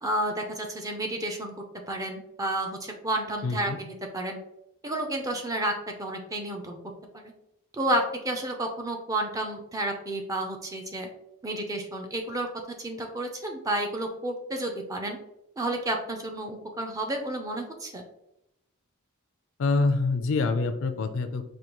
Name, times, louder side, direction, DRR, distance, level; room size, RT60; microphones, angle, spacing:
voice 1, 0.0-1.5 1.9-4.4 4.8-5.7 6.0-6.8 7.1-7.3 7.7-11.1 11.4-15.2 15.6-18.0, right 1 dB, 15° right, 3 dB, 0.4 m, -31 dB
voice 2, 3.4-3.8 19.6-21.5, left 3 dB, 60° left, 9 dB, 0.4 m, -26 dB
5.0 x 2.3 x 2.9 m, 0.82 s
head